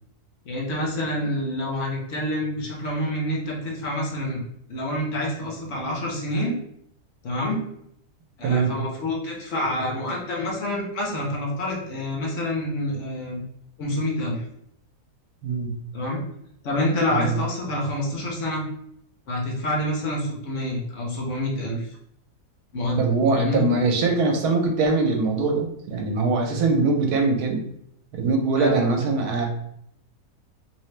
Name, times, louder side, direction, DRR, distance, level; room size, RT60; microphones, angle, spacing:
voice 1, 0.4-4.4 4.7-6.5 7.2-7.6 8.4-13.4 13.8-14.4 15.9-16.2 16.6-18.6 19.3-21.9 22.7-23.0 23.3-23.6 28.6-28.8, left 1 dB, 55° left, -2 dB, 1.0 m, -27 dB
voice 2, 8.4-8.7 15.4-15.7 17.1-17.4 23.0-27.6 28.1-29.5, right 3 dB, 80° right, 2 dB, 1.2 m, -22 dB
2.9 x 2.8 x 3.2 m, 0.73 s
omnidirectional pair, 1.7 m